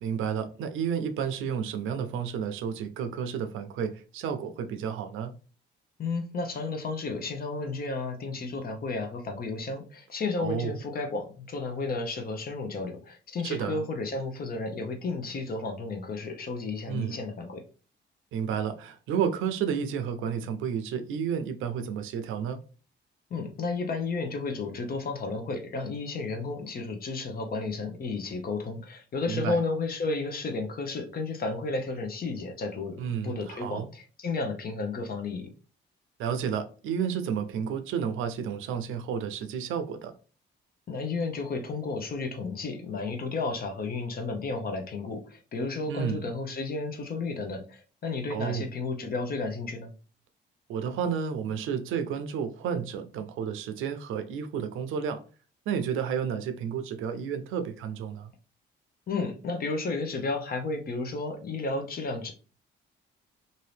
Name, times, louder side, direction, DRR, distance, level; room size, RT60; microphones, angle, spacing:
voice 1, 0.0-5.3 10.4-10.8 13.4-13.8 16.9-17.2 18.3-22.6 29.3-29.6 33.0-33.9 36.2-40.1 45.9-46.3 48.3-48.7 50.7-55.2 55.7-58.3, right 7 dB, 85° right, 0.5 m, -31 dB
voice 2, 6.0-17.6 23.3-35.5 40.9-49.9 59.1-62.3, left 3 dB, 50° left, 0.8 m, -32 dB
2.7 x 2.6 x 3.2 m
cardioid pair, 90°, 20 cm